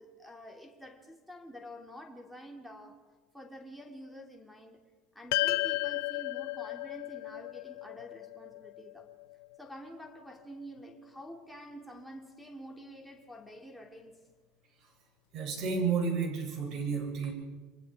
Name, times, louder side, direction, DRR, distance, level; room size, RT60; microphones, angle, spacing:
voice 1, 0.0-3.0 3.3-4.8 5.1-9.1 9.6-14.2, equal, ahead, 2.8 m, -48 dB
sound 1, 5.3-9.8, left 20 dB, 85° left, 0.6 m, -34 dB
sound 2, 5.4-7.0, left 10 dB, 55° left, 2.8 m, -51 dB
voice 2, 15.3-17.3, right 5 dB, 45° right, 7.9 m, -31 dB
29.5 x 24.0 x 4.9 m
cardioid pair, 140°, 0 cm